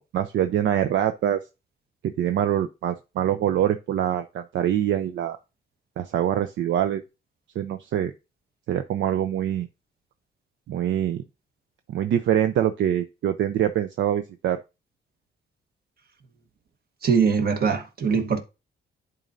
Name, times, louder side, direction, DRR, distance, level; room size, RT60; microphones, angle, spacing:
voice 1, 0.0-1.4 2.0-5.4 6.0-7.0 7.6-8.1 8.7-9.7 10.7-11.2 11.9-14.6, right 10 dB, 70° right, 0.6 m, -24 dB
voice 2, 17.0-18.4, right 6 dB, 50° right, 1.3 m, -22 dB
10.5 x 4.0 x 2.6 m
cardioid pair, 90°, 20 cm